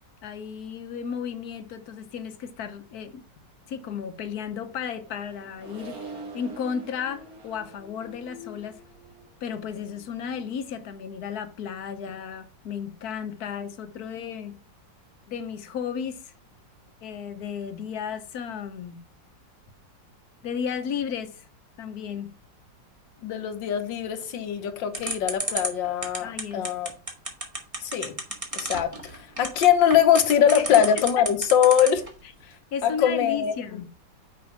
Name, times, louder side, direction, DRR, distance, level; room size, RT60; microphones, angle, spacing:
voice 1, 0.2-3.2 3.7-6.0 6.3-8.8 9.4-14.5 15.3-16.3 17.0-19.0 20.4-21.4 21.8-22.3 26.2-26.7 30.5-30.7 31.2-31.3 32.7-33.9, left 7 dB, 60° left, 1.3 m, -34 dB
Accelerating revving vroom, 4.2-10.9, right 1 dB, 55° right, 2.1 m, -45 dB
voice 2, 23.2-26.9 27.8-28.2 28.5-29.0 29.4-32.1 32.8-33.8, left 9 dB, 80° left, 1.7 m, -22 dB
sound 1, 24.9-32.1, right 1 dB, 20° right, 1.6 m, -30 dB
6.3 x 5.1 x 5.8 m
omnidirectional pair, 2.0 m